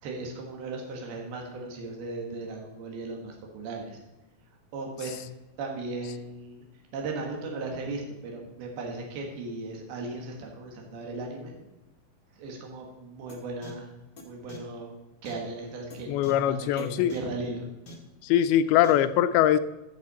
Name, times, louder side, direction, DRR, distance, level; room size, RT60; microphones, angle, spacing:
voice 1, 0.0-4.0 4.7-5.2 5.6-6.6 6.9-11.6 12.3-13.9 14.2-14.9 15.2-17.7, right 3 dB, 75° right, 1 dB, 3.6 m, -37 dB
sound 1, 13.3-13.4 13.6-13.7 14.2-14.3 14.5-14.6 15.2-15.3 15.9-16.0 16.2-16.3 16.8-16.9 17.1-17.2 17.9-18.0 18.8-18.9, left 1 dB, 70° left, 0.8 m, -44 dB
voice 2, 16.1-17.1 18.2-19.6, left 11 dB, 85° left, 11 dB, 2.5 m, -22 dB
14.0 x 6.7 x 4.2 m, 1.0 s
omnidirectional pair, 4.4 m